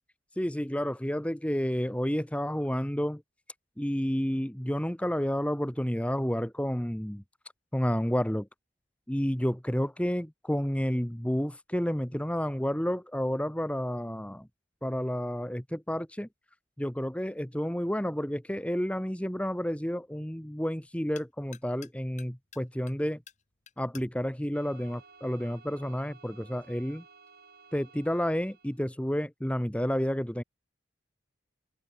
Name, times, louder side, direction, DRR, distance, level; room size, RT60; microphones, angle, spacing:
voice 1, 0.4-3.2 3.8-7.2 7.7-8.5 9.1-14.5 14.8-16.3 16.8-23.2 23.8-27.0 27.7-30.4, equal, 5° left, 1.4 m, -30 dB
sound 1, 18.1-25.7, left 9 dB, 40° left, 4.6 m, -58 dB
sound 2, 24.5-28.8, right 5 dB, 55° right, 5.6 m, -56 dB
open air
head